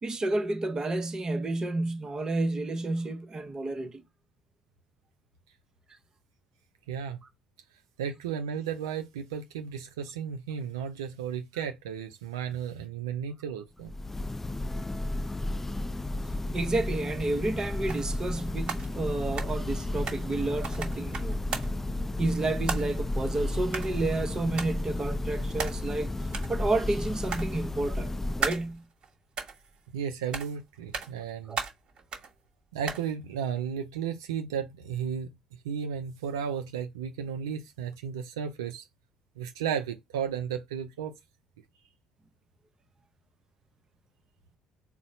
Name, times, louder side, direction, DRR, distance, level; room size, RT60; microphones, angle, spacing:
voice 1, 0.0-4.0 16.5-21.4 22.2-26.1 26.5-28.1 28.4-28.8 31.5-31.6, right 2 dB, 30° right, 0.8 m, -30 dB
voice 2, 6.9-7.2 8.0-13.9 29.9-31.6 32.7-35.3 35.6-38.9 39.4-41.1, right 8 dB, 80° right, 0.4 m, -34 dB
Church bell, 13.8-28.7, left 1 dB, 15° left, 0.3 m, -33 dB
sound 1, 16.6-16.7 17.9-18.3 18.6-20.4 20.6-21.9 22.7-23.2 23.7-24.1 24.6-24.8 25.6-26.0 26.3-26.6 27.3-27.9 28.4-29.1 29.4-30.0 30.3-30.6 30.9-31.3 31.6-32.3 32.9-33.1, right 5 dB, 45° right, 1.2 m, -36 dB
4.1 x 2.0 x 3.7 m
figure-of-eight pair, 55°, 2 cm